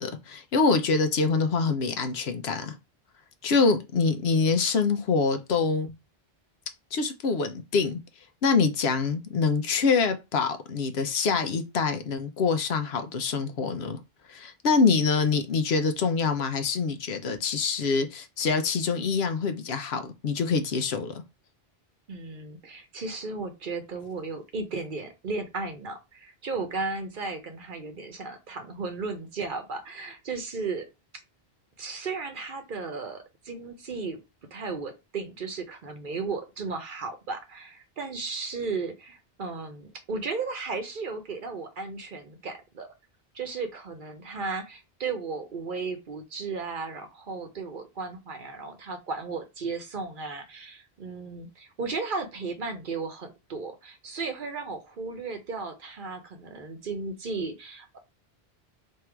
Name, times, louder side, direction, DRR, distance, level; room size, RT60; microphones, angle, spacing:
voice 1, 0.0-2.7 3.4-5.9 6.9-8.0 8.4-14.0 14.3-21.2, left 4 dB, 80° left, 1.0 m, -25 dB
voice 2, 22.1-30.9 31.8-34.2 34.5-42.9 43.3-58.0, right 4 dB, 55° right, 0.9 m, -35 dB
3.6 x 2.9 x 4.5 m
omnidirectional pair, 1.1 m